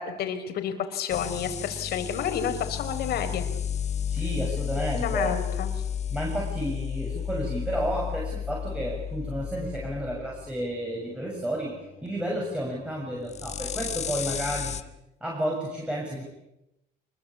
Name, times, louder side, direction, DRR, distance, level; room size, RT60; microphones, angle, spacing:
voice 1, 0.0-3.4 4.9-5.7, left 8 dB, 70° left, 7 dB, 4.7 m, -30 dB
sound 1, 1.1-14.8, left 8 dB, 40° left, 1.4 m, -33 dB
voice 2, 4.1-5.3 6.1-11.8 12.0-14.8 15.2-16.2, right 1 dB, 5° right, -2 dB, 7.5 m, -31 dB
26.0 x 22.5 x 8.7 m, 0.89 s
cardioid pair, 110°, 17 cm